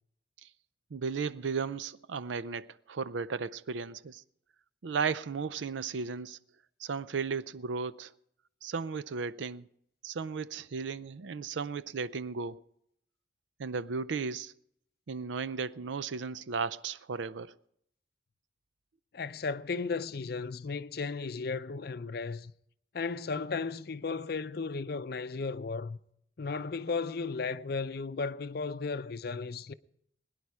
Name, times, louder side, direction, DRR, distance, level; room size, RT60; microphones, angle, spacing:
voice 1, 0.9-4.2 4.8-6.4 6.8-8.1 8.6-9.7 10.0-12.6 13.6-14.6 15.1-17.5, right 5 dB, 85° right, 0.5 m, -35 dB
voice 2, 19.1-22.5 22.9-26.0 26.4-29.7, left 4 dB, 55° left, 0.5 m, -35 dB
21.5 x 10.0 x 4.8 m
head